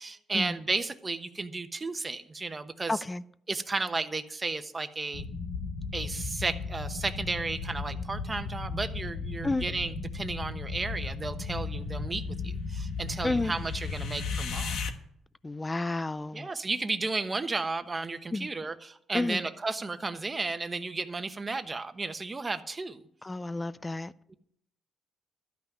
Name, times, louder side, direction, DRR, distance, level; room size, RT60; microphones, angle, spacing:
voice 1, 0.0-3.0 3.5-5.2 5.9-14.8 16.3-23.0 24.3-24.4, right 3 dB, 25° right, 1.0 m, -33 dB
voice 2, 2.9-3.2 9.4-9.6 13.2-13.5 15.4-16.5 18.3-18.5 19.1-19.4 23.2-24.1, left 2 dB, 20° left, 0.4 m, -31 dB
sound 1, 5.1-14.9, left 4 dB, 80° left, 1.2 m, -35 dB
12.5 x 5.8 x 9.3 m
cardioid pair, 90°, 0 cm